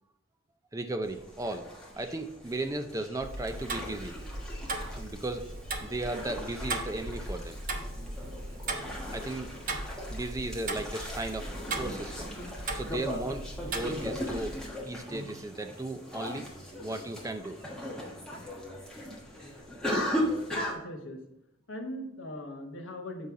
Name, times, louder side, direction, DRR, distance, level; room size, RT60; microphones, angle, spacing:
voice 1, 0.7-4.2 4.8-5.5 5.8-7.6 9.1-9.5 10.1-11.5 11.8-12.3 12.7-14.6 14.8-16.5 16.8-17.6, right 2 dB, 15° right, 7 dB, 0.4 m, -36 dB
sound 1, 1.0-20.7, equal, 5° left, 1.3 m, -38 dB
Tick-tock, 3.2-14.6, right 2 dB, 45° right, 0.8 m, -38 dB
voice 2, 20.8-21.2 21.7-23.3, left 1 dB, 80° left, 4 dB, 1.2 m, -39 dB
7.5 x 5.4 x 3.7 m, 0.80 s
head